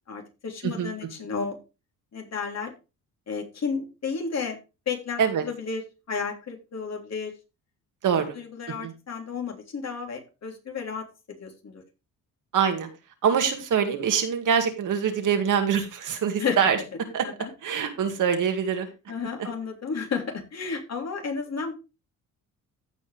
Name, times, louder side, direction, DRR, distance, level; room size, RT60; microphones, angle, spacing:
voice 1, 0.1-1.6 2.1-2.7 3.3-4.6 4.8-5.8 6.1-7.3 8.3-11.8 16.4-16.6 17.2-17.5 19.1-21.7, left 5 dB, 50° left, 1 dB, 3.4 m, -32 dB
voice 2, 8.0-8.4 8.8-8.9 12.5-12.9 13.2-16.8 17.1-17.2 17.6-18.9, right 7 dB, 65° right, 6 dB, 2.1 m, -24 dB
15.5 x 5.3 x 3.4 m, 0.29 s
cardioid pair, 95°, 34 cm